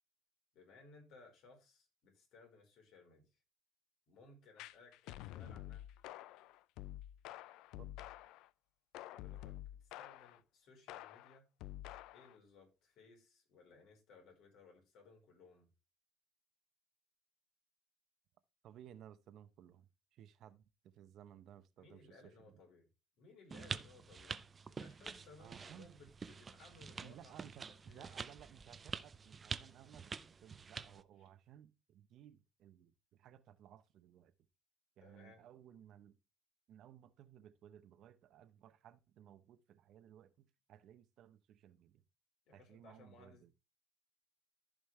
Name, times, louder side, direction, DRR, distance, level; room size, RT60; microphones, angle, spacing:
voice 1, 0.5-3.4 4.1-5.9 9.0-11.4 12.1-15.7 21.8-22.9 23.2-28.2 35.0-35.4 42.5-43.5, left 3 dB, 60° left, 4.7 m, -62 dB
sound 1, 4.6-8.5 8.9-10.4 10.9-12.4, left 14 dB, 75° left, 0.4 m, -49 dB
voice 2, 18.6-22.2 25.4-26.0 27.0-34.3 35.0-36.2 36.7-42.0 42.5-43.5, right 10 dB, 55° right, 0.8 m, -59 dB
sound 2, 23.5-31.0, right 5 dB, 25° right, 0.5 m, -47 dB
14.5 x 5.2 x 3.2 m
cardioid pair, 140°, 0 cm